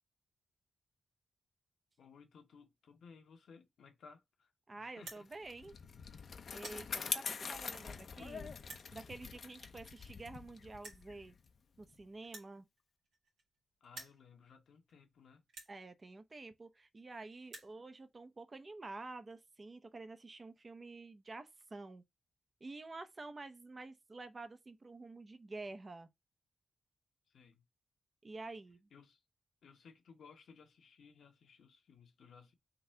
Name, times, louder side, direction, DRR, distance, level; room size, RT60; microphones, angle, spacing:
voice 1, 2.0-5.3 7.4-8.5 13.8-15.4 27.3-27.6 28.9-29.2 29.6-32.5, left 5 dB, 80° left, 1.1 m, -60 dB
voice 2, 4.7-5.7 6.5-8.5 8.9-11.3 11.8-12.7 15.7-22.0 22.6-26.1 28.2-28.9, right 3 dB, 40° right, 0.7 m, -49 dB
sound 1, 5.0-5.2 5.9-6.1 6.4-6.8 7.6-7.7 8.6-8.9 9.9-10.0 10.2-10.3 10.8-11.1 12.2-13.6 13.8-14.2 14.9-15.0 15.5-15.7 16.7-16.8 17.0-17.1 17.3-17.7, right 3 dB, 90° right, 1.7 m, -51 dB
Bicycle, 5.3-12.0, left 5 dB, 65° left, 0.6 m, -44 dB
3.9 x 2.7 x 4.4 m
cardioid pair, 55°, 0 cm